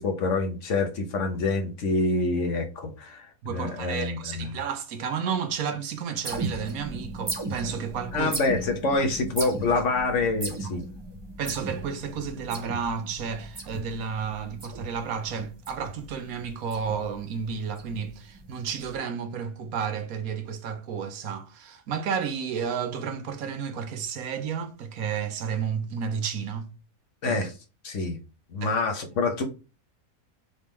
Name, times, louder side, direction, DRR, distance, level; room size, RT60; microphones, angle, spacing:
voice 1, 0.0-4.5 8.1-10.8 27.2-27.5 27.8-28.2 28.5-29.4, left 3 dB, 60° left, 1.3 m, -26 dB
voice 2, 3.4-8.3 11.4-26.7 27.2-27.4 28.6-28.8, right 6 dB, 80° right, 1.2 m, -32 dB
sound 1, 6.2-18.9, right 2 dB, 30° right, 0.5 m, -37 dB
4.2 x 3.6 x 3.1 m
omnidirectional pair, 1.5 m